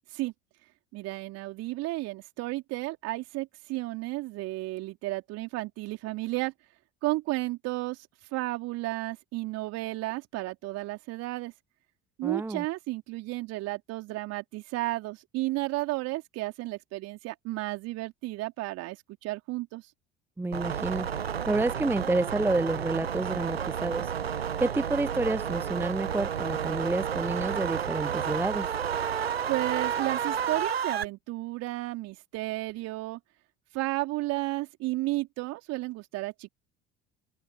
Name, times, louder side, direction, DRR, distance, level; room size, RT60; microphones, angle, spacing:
voice 1, 0.9-6.5 7.0-8.1 8.3-11.5 12.2-19.8 29.5-33.2 33.7-36.5, right 20 dB, 55° right, 3.6 m, -33 dB
voice 2, 12.2-12.6 20.4-21.1 21.4-24.1 24.6-28.7, right 2 dB, 5° right, 0.6 m, -29 dB
sound 1, 20.5-31.0, right 8 dB, 90° right, 0.8 m, -31 dB
figure-of-eight pair, 65°, 30 cm